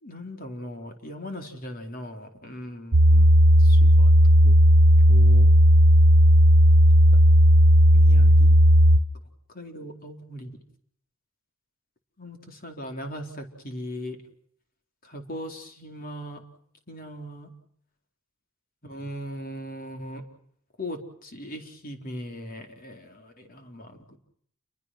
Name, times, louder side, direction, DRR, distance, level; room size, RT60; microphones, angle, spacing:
voice 1, 0.0-3.3 3.6-4.1 4.4-4.6 5.1-5.5 7.9-8.6 9.5-10.5 12.2-14.2 15.1-16.4 16.9-17.5 18.8-20.2 20.8-24.2, equal, 45° left, 4 dB, 4.4 m, -39 dB
sound 1, 2.9-9.0, equal, 90° right, 1.3 m, -15 dB
29.5 x 23.0 x 6.2 m, 0.66 s
head